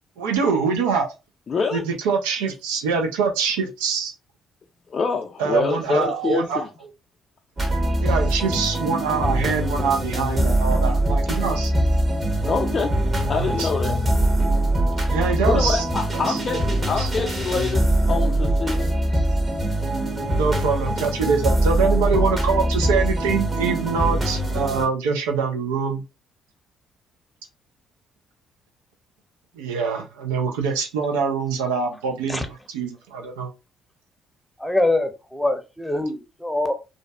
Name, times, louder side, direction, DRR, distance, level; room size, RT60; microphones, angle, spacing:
voice 1, 0.2-1.1 1.7-4.1 5.4-6.9 8.0-11.7 13.4-13.7 15.1-15.8 16.1-16.4 17.0-17.1 20.3-26.0 29.6-33.5, right 5 dB, 85° right, 0.5 m, -24 dB
voice 2, 1.5-1.8 4.9-6.7 12.4-12.9 13.3-14.0 15.5-18.9, left 5 dB, 50° left, 0.4 m, -26 dB
sound 1, 7.6-24.9, right 1 dB, 35° right, 1.0 m, -22 dB
voice 3, 34.6-36.7, left 2 dB, 5° left, 0.7 m, -24 dB
2.5 x 2.3 x 2.3 m
hypercardioid pair, 50°, 0 cm